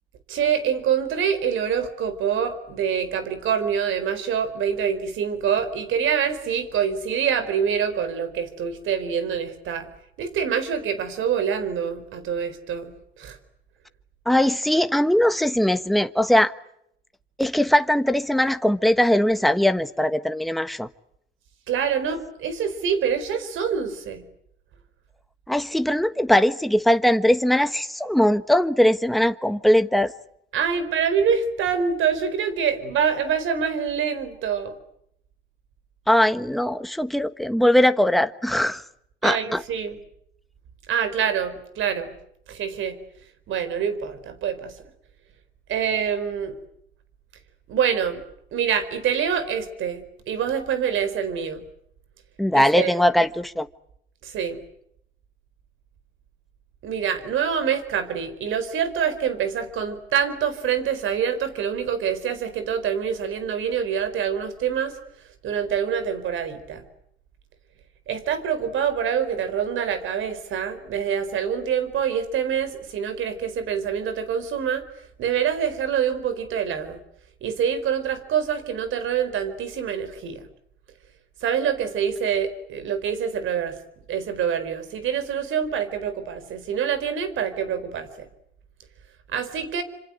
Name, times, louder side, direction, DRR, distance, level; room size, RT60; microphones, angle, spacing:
voice 1, 0.3-9.9 10.2-12.9 13.2-13.4 21.7-24.2 30.5-34.8 39.2-40.0 40.9-42.1 42.5-43.0 43.5-44.7 45.7-46.6 47.7-48.2 48.5-51.6 52.5-52.9 54.2-54.6 56.8-65.0 65.4-66.8 68.1-74.8 75.2-77.0 77.4-80.4 81.4-83.8 84.1-88.3 89.3-89.8, right 7 dB, 80° right, 13 dB, 4.5 m, -25 dB
voice 2, 14.3-16.5 17.4-20.9 25.5-30.1 36.1-38.8 39.2-39.6 52.4-53.7, left 1 dB, ahead, 10 dB, 1.3 m, -20 dB
27.0 x 27.0 x 7.8 m, 0.74 s
cardioid pair, 90°, 20 cm